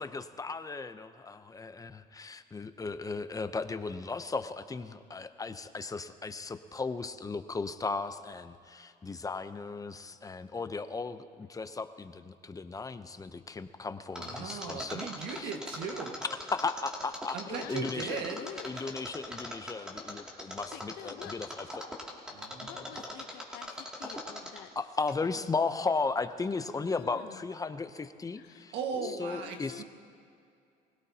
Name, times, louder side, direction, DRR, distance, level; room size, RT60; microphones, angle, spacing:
voice 1, 0.0-15.0 15.3-15.5 16.2-18.2 18.6-21.8 24.6-28.7 29.2-29.8, left 4 dB, 20° left, 10 dB, 0.6 m, -36 dB
Mechanisms, 14.2-24.7 25.1-25.2, left 1 dB, 5° right, 2.4 m, -40 dB
voice 2, 14.2-16.2 17.3-18.4 22.3-23.0 28.7-29.8, right 6 dB, 85° right, 4 dB, 1.6 m, -38 dB
voice 3, 17.4-18.9 20.4-21.4 22.6-24.8 25.2-25.5 26.8-27.4 28.4-29.8, left 11 dB, 70° left, 10 dB, 0.9 m, -47 dB
24.0 x 17.0 x 2.8 m, 2.5 s
cardioid pair, 110°, 17 cm